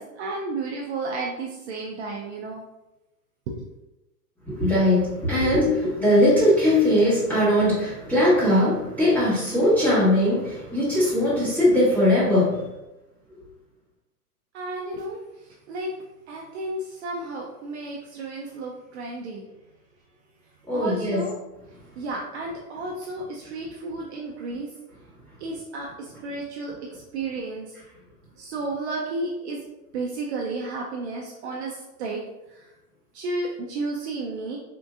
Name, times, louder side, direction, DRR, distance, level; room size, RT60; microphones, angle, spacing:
voice 1, 0.0-2.6 3.5-3.7 14.5-15.9 16.3-19.5 20.7-21.3 22.0-24.7 25.4-27.7 28.4-29.6 29.9-32.2 32.5-32.6 33.1-34.6, right 2 dB, 45° right, -2 dB, 0.5 m, -32 dB
voice 2, 4.5-12.7 13.3-13.4 20.7-21.3, left 1 dB, 5° left, -10 dB, 1.4 m, -20 dB
3.6 x 2.5 x 2.4 m, 0.97 s
hypercardioid pair, 135°, 47 cm